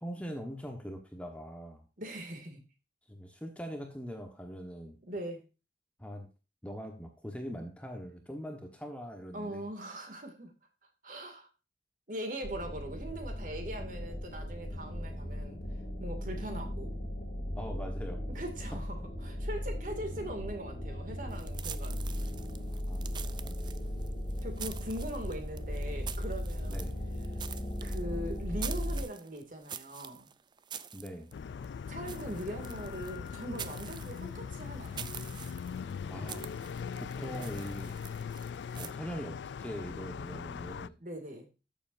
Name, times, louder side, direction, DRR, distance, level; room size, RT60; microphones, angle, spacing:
voice 1, 0.0-1.8 3.1-5.0 6.0-6.3 6.6-9.7 17.6-18.2 18.7-18.8 22.9-23.1 23.4-23.6 26.7-27.0 30.9-31.3 36.1-36.4 37.0-37.9 38.7-40.9, equal, 5° left, 4 dB, 1.2 m, -42 dB
voice 2, 2.0-2.6 5.1-5.4 9.3-10.5 11.0-11.5 12.1-15.6 16.0-16.9 18.3-22.1 24.4-26.9 27.8-30.3 31.9-35.1 37.2-37.4 41.0-41.5, right 1 dB, 45° right, 4 dB, 2.3 m, -41 dB
sound 1, 12.4-29.0, equal, 35° left, 2.1 m, -37 dB
sound 2, 21.3-38.9, right 8 dB, 25° right, 0.4 m, -46 dB
sound 3, 31.3-40.9, left 6 dB, 80° left, 0.3 m, -40 dB
13.0 x 7.1 x 2.6 m, 0.31 s
head